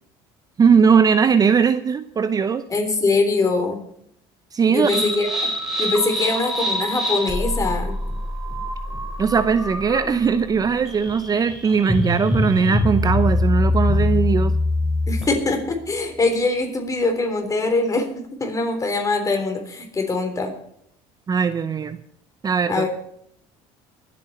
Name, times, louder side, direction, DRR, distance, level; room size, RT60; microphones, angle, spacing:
voice 1, 0.6-2.6 4.5-4.9 9.2-14.5 21.3-22.0 22.4-22.9, right 6 dB, 30° right, 12 dB, 0.6 m, -19 dB
voice 2, 2.7-3.8 4.7-5.4 5.8-7.9 15.1-18.1 18.4-20.5 22.7-22.9, left 3 dB, 25° left, 4 dB, 3.6 m, -22 dB
sound 1, 4.8-15.4, left 2 dB, 5° right, 4.4 m, -24 dB
24.0 x 8.6 x 4.3 m, 0.71 s
supercardioid pair, 90°, 13 cm